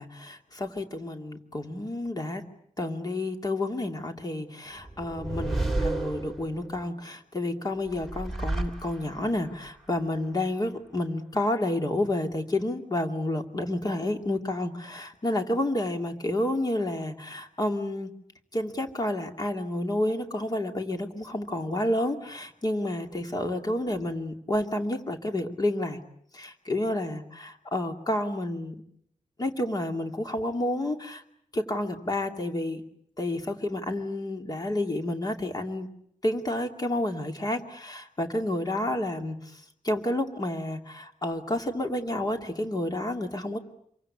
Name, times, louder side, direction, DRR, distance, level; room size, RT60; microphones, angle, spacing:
voice 1, 0.0-2.4 2.8-18.1 18.5-26.0 26.3-28.8 29.4-31.2 31.5-32.8 33.2-35.9 36.2-43.6, left 1 dB, 30° left, 4 dB, 2.6 m, -30 dB
sound 1, 4.8-6.8 7.9-9.4, right 2 dB, ahead, 3.1 m, -31 dB
27.0 x 24.0 x 8.6 m, 0.70 s
wide cardioid pair, 180°, 13 cm